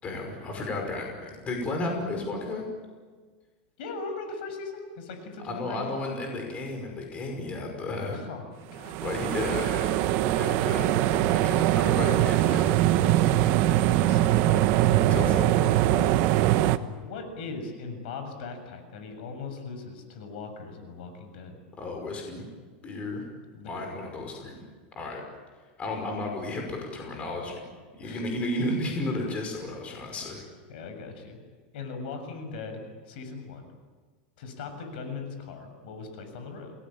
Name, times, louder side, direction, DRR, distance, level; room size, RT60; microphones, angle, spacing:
voice 1, 0.0-2.6 5.4-8.2 9.0-12.7 14.4-14.6 15.1-15.7 21.8-22.4 22.8-23.2 23.7-24.6 25.0-25.2 25.8-27.6 27.9-30.4, left 2 dB, 20° left, 2 dB, 5.4 m, -33 dB
voice 2, 3.8-6.0 8.1-9.1 13.2-14.3 15.9-21.6 23.5-23.9 28.0-28.3 30.7-31.4 31.7-33.7 34.4-36.7, left 4 dB, 65° left, 6 dB, 6.9 m, -40 dB
sound 1, 8.8-16.8, right 14 dB, 45° right, 1.2 m, -22 dB
28.5 x 20.0 x 9.0 m, 1.5 s
supercardioid pair, 160°, 5 cm